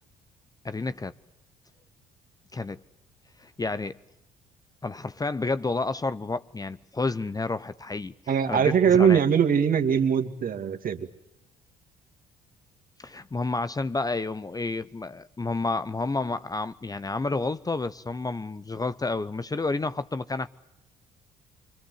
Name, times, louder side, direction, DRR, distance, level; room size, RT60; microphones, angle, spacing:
voice 1, 0.6-1.1 2.5-2.8 3.4-4.0 4.8-8.1 8.5-9.2 13.0-20.5, left 3 dB, 20° left, 0.9 m, -30 dB
voice 2, 8.3-11.1, right 7 dB, 45° right, 2.5 m, -21 dB
26.0 x 24.5 x 8.2 m
hypercardioid pair, 50°, 19 cm